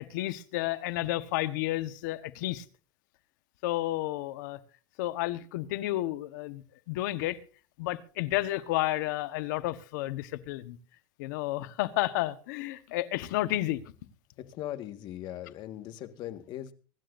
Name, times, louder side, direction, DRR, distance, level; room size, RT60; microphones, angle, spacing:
voice 1, 0.0-2.6 3.6-4.6 5.0-7.4 7.8-10.8 11.2-13.8, left 16 dB, 85° left, 1.2 m, -31 dB
voice 2, 14.4-16.7, left 12 dB, 50° left, 1.6 m, -39 dB
24.5 x 12.5 x 2.6 m
supercardioid pair, 145°, 10 cm